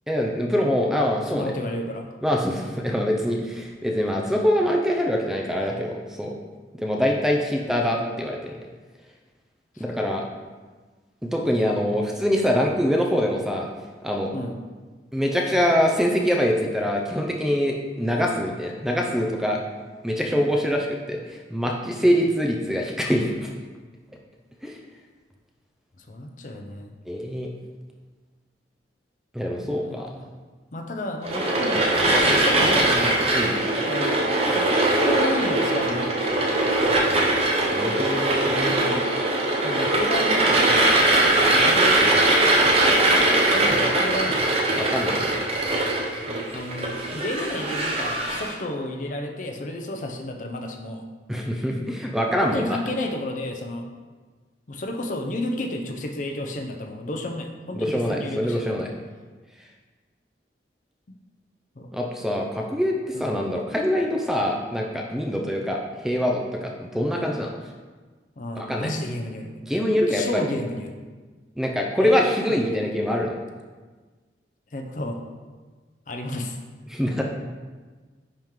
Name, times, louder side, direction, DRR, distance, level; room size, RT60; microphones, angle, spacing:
voice 1, 0.1-1.5 2.2-6.3 6.8-8.6 9.8-10.2 11.3-13.7 14.0-14.3 15.1-19.6 20.0-23.5 24.6-24.8 27.1-27.5 29.3-30.1 33.3-33.5 37.7-38.8 44.7-45.3 51.3-52.8 57.8-58.9 61.9-67.5 68.6-68.9 69.7-70.5 71.6-73.3 76.9-77.2, equal, 5° right, 0 dB, 0.4 m, -24 dB
voice 2, 1.3-2.1 9.8-9.9 12.6-12.8 14.3-14.6 26.0-26.9 29.6-30.3 30.7-33.2 33.8-36.4 38.5-39.0 39.6-41.1 41.5-42.4 43.5-44.4 46.3-51.0 52.4-53.9 54.7-58.7 61.8-61.9 63.1-63.4 68.4-69.5 70.1-70.9 72.0-72.2 72.5-72.7 74.7-75.2 76.1-76.6, left 1 dB, 45° left, 3 dB, 0.6 m, -32 dB
sound 1, 31.2-48.5, right 2 dB, 35° right, 0.7 m, -21 dB
10.0 x 3.7 x 3.1 m, 1.4 s
head